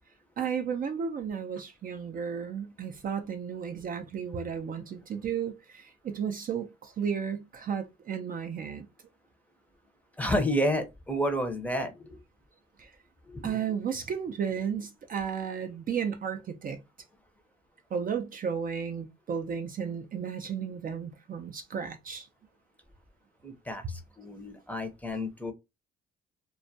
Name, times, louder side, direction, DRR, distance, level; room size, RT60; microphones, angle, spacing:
voice 1, 0.4-8.9 12.8-12.9 13.4-16.8 17.9-22.3, right 7 dB, 45° right, 0.4 m, -33 dB
voice 2, 10.2-12.2 13.3-13.6 23.4-25.5, equal, 10° left, 0.6 m, -30 dB
2.2 x 2.1 x 2.6 m
cardioid pair, 90°, 20 cm